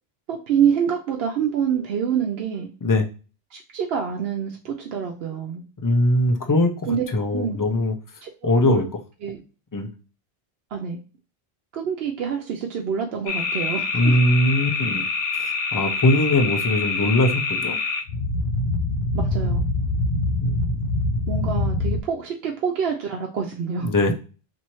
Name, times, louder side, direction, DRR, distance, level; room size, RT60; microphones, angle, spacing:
voice 1, 0.3-2.7 3.5-5.6 6.9-7.0 7.3-7.6 8.2-8.8 9.2-9.4 10.7-11.0 11.7-14.2 19.1-19.6 21.3-23.9, right 7 dB, 75° right, 0 dB, 0.8 m, -26 dB
voice 2, 5.8-6.7 7.1-8.0 8.4-8.9 9.7-9.9 13.9-15.1 15.4-17.8 20.4-20.7 23.8-24.1, left 1 dB, 35° left, 5 dB, 0.3 m, -21 dB
sound 1, 13.3-22.0, left 3 dB, 70° left, 0.8 m, -25 dB
4.2 x 2.6 x 3.0 m, 0.35 s
omnidirectional pair, 1.1 m